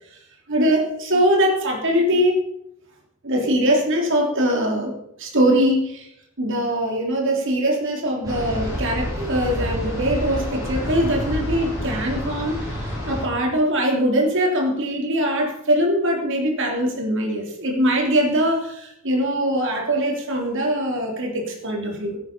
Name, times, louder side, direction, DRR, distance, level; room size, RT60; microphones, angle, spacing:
voice 1, 0.5-2.5 3.2-4.9 5.2-6.1 6.4-22.2, equal, 60° right, 1 dB, 3.6 m, -22 dB
sound 1, 8.2-13.2, equal, 15° right, 6.4 m, -28 dB
16.5 x 8.8 x 5.5 m, 0.76 s
head